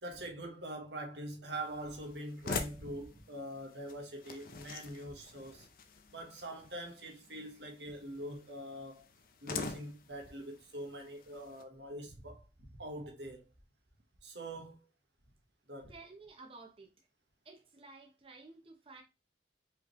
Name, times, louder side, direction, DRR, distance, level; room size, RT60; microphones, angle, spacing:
voice 1, 0.0-5.7 6.1-9.1 9.4-12.4 12.8-13.5 14.2-14.8 15.7-15.9, right 1 dB, 80° right, 1.2 m, -44 dB
sound 1, 1.5-11.6, left 4 dB, 50° left, 0.5 m, -46 dB
voice 2, 15.9-16.9 17.4-19.0, right 3 dB, 30° right, 0.7 m, -53 dB
4.8 x 3.1 x 3.0 m
head